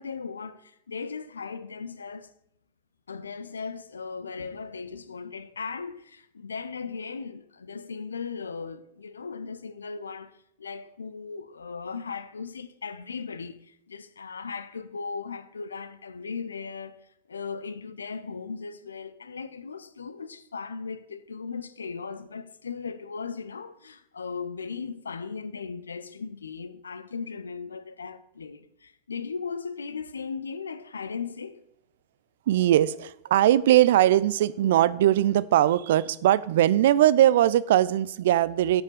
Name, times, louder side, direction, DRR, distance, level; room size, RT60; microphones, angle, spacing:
voice 1, 0.0-2.3 3.1-17.0 17.3-31.6, left 5 dB, 75° left, 0.6 m, -37 dB
voice 2, 32.5-38.8, right 12 dB, 55° right, 0.4 m, -20 dB
8.2 x 6.6 x 6.6 m
figure-of-eight pair, 90°, 0 cm